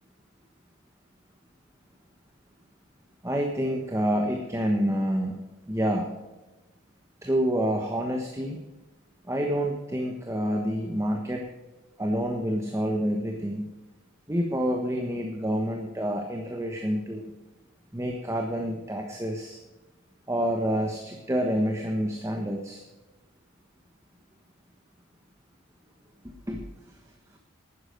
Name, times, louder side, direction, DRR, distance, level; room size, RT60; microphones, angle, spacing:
voice 1, 3.2-5.4 5.7-6.1 7.2-8.6 9.3-11.5 12.0-13.7 14.3-17.3 17.9-19.6 20.3-22.8 26.5-26.6, equal, 15° right, 2 dB, 1.2 m, -28 dB
12.0 x 9.9 x 5.2 m, 1.1 s
head